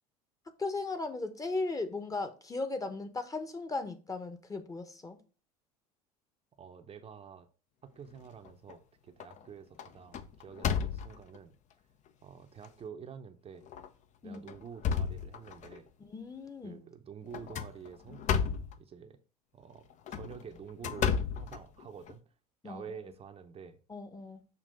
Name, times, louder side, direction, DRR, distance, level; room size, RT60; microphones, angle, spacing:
voice 1, 0.6-5.2 14.2-14.5 16.1-16.8 22.6-22.8 23.9-24.4, left 3 dB, 15° left, 1.0 m, -37 dB
voice 2, 6.6-7.5 7.8-11.6 12.2-13.7 14.2-15.9 16.6-18.3 18.8-19.2 19.5-22.2 22.6-23.8, right 7 dB, 30° right, 0.7 m, -48 dB
sound 1, 8.2-8.7 9.2-9.4 9.8-11.4 12.1-12.2 12.6-12.7 13.6-13.9 14.3-15.8 17.3-18.8 19.9-22.1, left 7 dB, 40° left, 0.6 m, -33 dB
6.8 x 2.8 x 5.4 m
hypercardioid pair, 75°, 19 cm